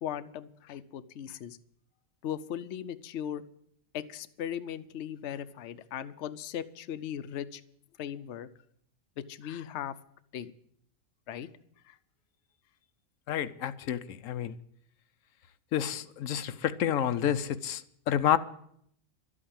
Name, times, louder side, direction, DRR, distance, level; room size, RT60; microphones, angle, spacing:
voice 1, 0.0-1.6 2.2-3.4 3.9-7.6 8.0-8.5 9.2-10.0 10.3-10.5 11.3-11.5 11.9-12.0, left 9 dB, 65° left, 0.9 m, -38 dB
voice 2, 13.3-14.5 15.7-18.4, left 10 dB, 90° left, 1.1 m, -29 dB
12.5 x 8.7 x 8.7 m
omnidirectional pair, 1.3 m